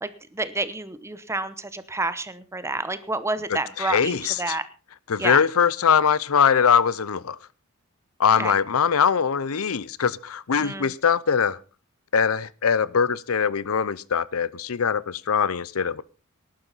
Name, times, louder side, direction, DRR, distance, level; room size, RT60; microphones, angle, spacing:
voice 1, 0.0-4.6 5.2-5.4 8.4-8.5 10.6-10.9, right 2 dB, 15° right, 0.9 m, -29 dB
voice 2, 3.5-4.6 5.1-7.4 8.2-11.6 12.1-16.0, left 6 dB, 80° left, 0.7 m, -22 dB
18.5 x 11.5 x 4.1 m
head